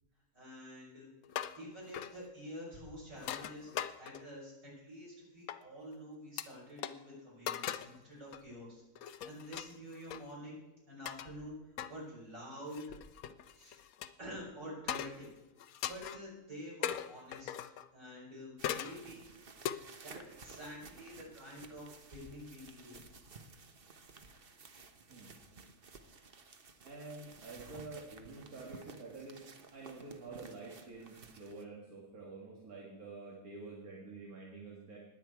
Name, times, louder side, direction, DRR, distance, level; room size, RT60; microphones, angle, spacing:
voice 1, 0.3-10.6 10.9-11.6 11.9-13.0 13.5-13.8 14.2-15.3 15.6-17.5 17.9-19.2 20.0-23.0, equal, 60° right, -5 dB, 6.2 m, -48 dB
sound 1, 1.2-1.6 1.9-2.2 3.2-4.4 5.5-5.6 6.4-6.5 6.8-6.9 7.5-8.0 8.3-8.5 8.9-10.2 11.0-11.3 11.8-11.9 12.7-14.1 14.9-15.3 15.6-16.2 16.8-17.9 18.6-19.0 19.6-19.8, left 10 dB, 75° left, 1.1 m, -39 dB
sound 2, 18.6-31.6, right 4 dB, 45° right, 1.1 m, -55 dB
voice 2, 26.8-29.4 29.7-35.0, right 3 dB, 80° right, -3 dB, 2.5 m, -48 dB
20.5 x 8.3 x 4.7 m, 1.0 s
omnidirectional pair, 1.5 m